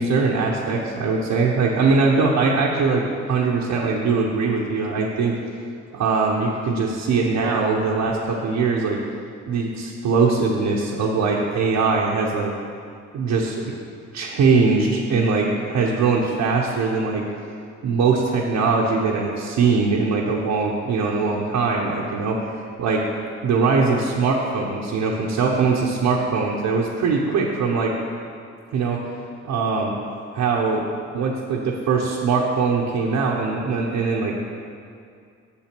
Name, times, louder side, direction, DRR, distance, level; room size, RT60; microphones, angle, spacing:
voice 1, 0.0-3.0 3.3-5.4 5.9-9.0 9.5-12.5 13.1-13.6 14.1-17.2 17.8-22.4 22.8-23.0 23.4-27.9 28.7-29.0 29.4-29.9 30.3-30.9 31.1-34.4, right 4 dB, 75° right, -4 dB, 1.0 m, -21 dB
7.4 x 7.2 x 6.0 m, 2.3 s
cardioid pair, 90°, 30 cm